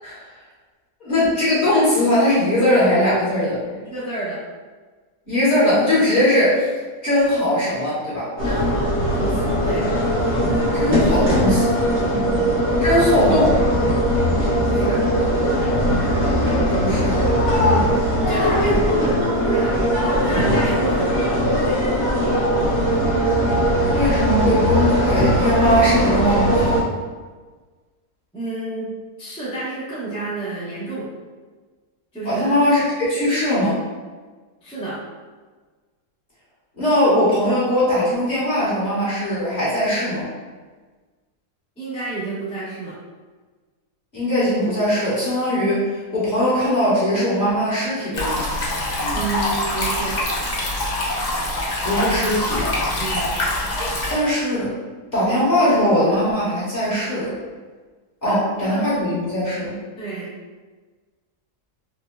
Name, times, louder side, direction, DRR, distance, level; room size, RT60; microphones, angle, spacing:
voice 1, 1.0-3.6 5.3-6.7 7.0-8.3 10.7-11.8 12.8-13.6 16.7-17.3 18.6-18.8 23.9-26.8 32.2-33.8 36.8-40.3 44.1-48.5 51.8-52.7 53.8-54.7 55.1-57.4 58.2-59.7, left 1 dB, 30° left, -10 dB, 1.3 m, -20 dB
voice 2, 3.8-4.4 8.4-9.9 12.1-12.4 14.6-15.0 17.6-18.0 18.3-21.8 28.3-28.9 29.2-31.1 32.1-32.4 34.6-35.0 41.8-42.9 49.1-50.2 53.0-53.4 58.2-58.8 60.0-60.3, right 3 dB, 5° left, -10 dB, 0.5 m, -29 dB
sound 1, 8.4-26.8, equal, 10° right, 0.8 m, -20 dB
sound 2, 48.1-54.1, left 1 dB, 65° left, 0.4 m, -24 dB
4.5 x 2.1 x 2.2 m, 1.4 s
omnidirectional pair, 1.7 m